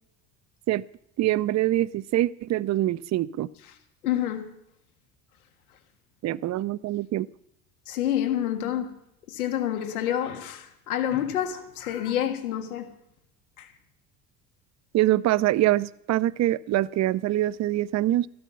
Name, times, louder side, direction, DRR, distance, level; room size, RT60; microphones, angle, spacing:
voice 1, 1.2-3.5 6.2-7.3 14.9-18.3, right 15 dB, 40° right, 0.6 m, -24 dB
voice 2, 4.0-4.5 7.9-8.9 9.3-12.9 13.6-13.7, left 11 dB, 85° left, 1.6 m, -28 dB
14.0 x 12.0 x 5.7 m
hypercardioid pair, 75°, 43 cm